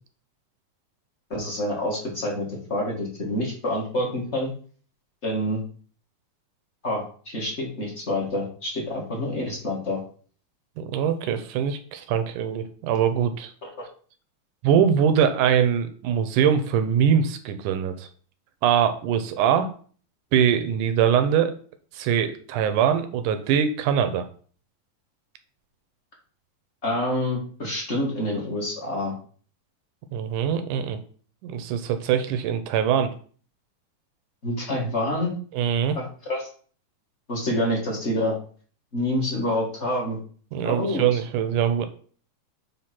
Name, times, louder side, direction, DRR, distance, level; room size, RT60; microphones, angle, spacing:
voice 1, 1.3-4.5 5.2-5.6 6.8-10.0 13.6-13.7 26.8-29.1 34.4-35.3 35.9-36.5 37.3-38.4 38.9-40.2 40.6-41.2, left 1 dB, 30° left, -1 dB, 1.4 m, -27 dB
voice 2, 10.8-13.5 14.6-18.1 18.6-19.7 20.3-21.6 21.9-24.3 30.1-31.0 31.4-33.1 35.5-36.0 40.5-41.9, right 8 dB, 75° right, 9 dB, 2.0 m, -22 dB
8.0 x 3.6 x 6.0 m, 0.44 s
omnidirectional pair, 4.0 m